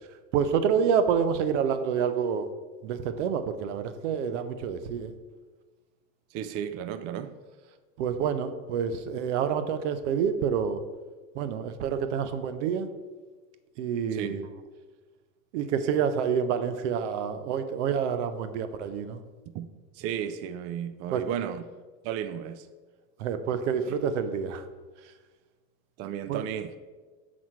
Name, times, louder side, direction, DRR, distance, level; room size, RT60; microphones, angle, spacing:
voice 1, 0.3-2.5 2.8-5.1 8.0-10.8 11.3-12.9 13.8-14.5 15.5-19.2 21.1-21.3 23.2-24.7 26.3-26.4, right 7 dB, 90° right, 0.7 m, -28 dB
voice 2, 6.3-7.3 14.1-14.4 19.5-19.7 19.9-21.6 22.0-22.7 26.0-26.8, right 9 dB, 45° right, 0.4 m, -33 dB
7.3 x 4.2 x 4.5 m
supercardioid pair, 135°, 35 cm